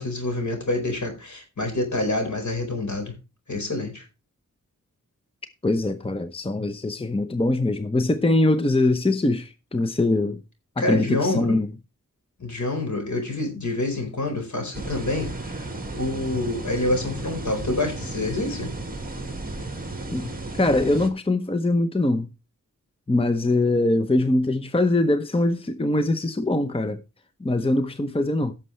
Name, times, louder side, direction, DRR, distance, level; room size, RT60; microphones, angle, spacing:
voice 1, 0.0-3.1 3.5-4.0 10.8-11.6 12.4-18.7, left 2 dB, 60° left, 4.6 m, -27 dB
voice 2, 5.6-10.4 10.9-11.7 20.1-20.3 20.6-22.3 23.1-27.0 27.4-28.5, left 2 dB, 15° left, 0.8 m, -22 dB
sound 1, 14.7-21.1, right 2 dB, 25° right, 2.0 m, -34 dB
16.5 x 6.8 x 3.2 m
wide cardioid pair, 80°, 33 cm